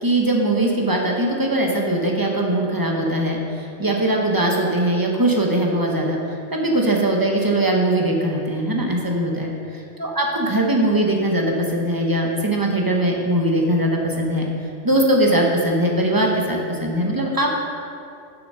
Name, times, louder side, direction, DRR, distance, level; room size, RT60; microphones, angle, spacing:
voice 1, 0.0-6.2 6.5-14.5 14.8-17.5, right 1 dB, 20° right, 0 dB, 0.8 m, -21 dB
7.0 x 5.9 x 5.5 m, 2.6 s
omnidirectional pair, 1.2 m